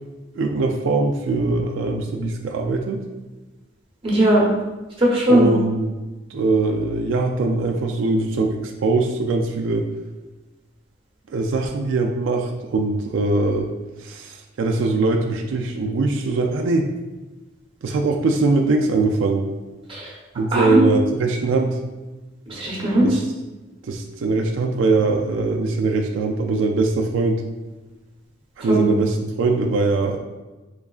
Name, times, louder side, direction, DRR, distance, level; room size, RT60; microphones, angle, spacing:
voice 1, 0.4-3.0 5.3-5.9 6.3-9.9 11.3-13.7 14.0-16.9 17.8-19.5 20.4-21.8 23.0-23.2 23.8-27.4 28.6-30.2, right 3 dB, 85° right, 2 dB, 0.3 m, -21 dB
voice 2, 4.0-4.4 5.0-5.5 19.9-20.1 20.5-20.8 22.5-23.1 28.7-28.8, right 1 dB, 30° right, -4 dB, 0.9 m, -18 dB
3.6 x 3.1 x 2.3 m, 1.2 s
head